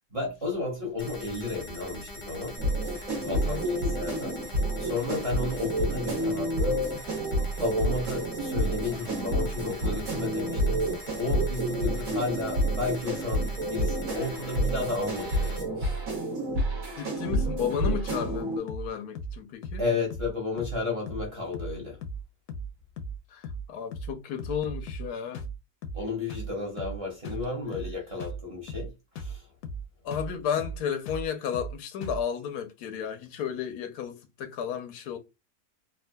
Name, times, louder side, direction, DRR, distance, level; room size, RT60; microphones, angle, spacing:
voice 1, 0.1-2.6 3.2-4.4 4.8-6.8 7.6-10.9 11.2-16.0 19.8-22.0 25.9-28.9 29.2-29.5, left 3 dB, 25° right, 0.9 m, -33 dB
sound 1, 1.0-15.6, left 1 dB, 30° left, 0.6 m, -43 dB
sound 2, 2.6-18.6, right 1 dB, 65° right, 1.4 m, -29 dB
voice 2, 3.2-3.6 17.0-19.8 23.3-25.4 27.3-27.5 30.0-35.2, left 8 dB, 90° left, 1.2 m, -33 dB
sound 3, 17.2-17.5 17.7-17.9 18.2-18.4 18.7-18.9 19.1-19.4 19.6-19.8 20.1-20.3 20.6-20.8 21.1-21.3 21.5-21.8 22.0-22.2 22.5-22.7 23.0-23.2 23.4-23.7 23.9-24.1 24.4-25.1 25.3-25.6 25.8-26.0 26.3-26.5 26.8-27.0 27.2-27.5 27.7-27.9 28.2-28.4 28.7-28.9 29.1-29.4 29.6-29.8 30.1-30.3 30.6-30.8 31.1-31.3 31.5-31.7 32.0-32.2, right 1 dB, 70° left, 0.9 m, -36 dB
3.5 x 2.4 x 2.2 m
omnidirectional pair, 1.6 m